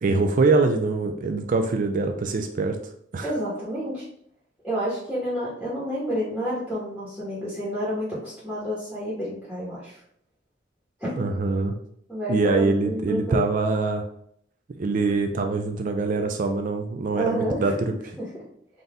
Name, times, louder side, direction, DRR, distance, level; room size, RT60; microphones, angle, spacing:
voice 1, 0.0-2.8 3.1-3.3 11.1-11.8 12.3-14.0 14.8-17.9, right 3 dB, 45° right, 5 dB, 0.4 m, -24 dB
voice 2, 3.2-4.0 4.6-10.0 11.0-11.3 12.1-13.5 17.2-17.9 18.2-18.3, equal, ahead, -10 dB, 1.3 m, -29 dB
4.0 x 2.7 x 3.5 m, 0.69 s
head